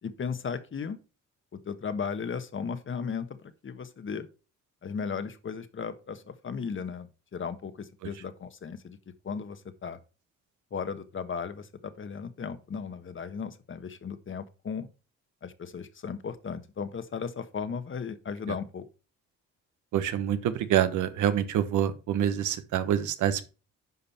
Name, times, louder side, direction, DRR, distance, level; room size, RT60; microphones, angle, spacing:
voice 1, 0.0-1.0 1.6-4.3 4.8-9.0 9.2-10.0 10.7-14.9 15.4-18.9, left 6 dB, 40° left, 1.3 m, -36 dB
voice 2, 19.9-23.5, right 10 dB, 80° right, 1.2 m, -26 dB
9.8 x 5.4 x 4.3 m
cardioid pair, 90°, 30 cm